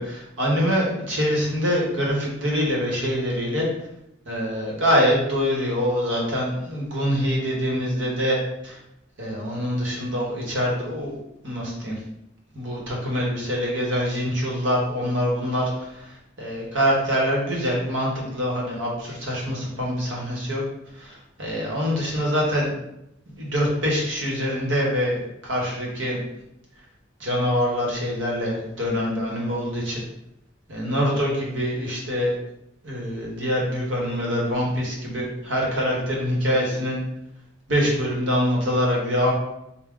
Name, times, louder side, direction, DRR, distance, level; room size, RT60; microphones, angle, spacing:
voice 1, 0.0-3.7 4.3-8.8 9.2-11.2 11.4-11.9 12.5-20.6 21.0-22.7 23.4-26.2 27.2-30.0 30.7-32.3 32.8-37.0 37.7-39.3, equal, 80° right, -3 dB, 1.1 m, -24 dB
3.5 x 2.2 x 3.6 m, 0.83 s
head